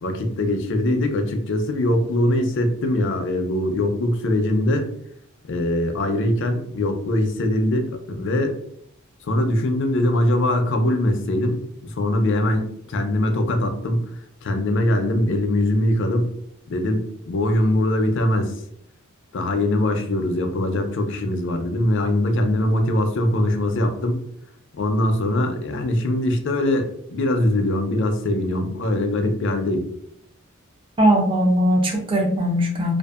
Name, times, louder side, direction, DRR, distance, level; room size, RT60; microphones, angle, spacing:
voice 1, 0.0-4.9 5.5-8.6 9.2-14.0 14.4-16.3 16.7-18.6 19.3-24.2 24.8-29.9, left 1 dB, 55° left, 5 dB, 0.4 m, -22 dB
voice 2, 31.0-33.0, equal, 25° right, 1 dB, 0.5 m, -19 dB
2.6 x 2.4 x 2.3 m, 0.70 s
head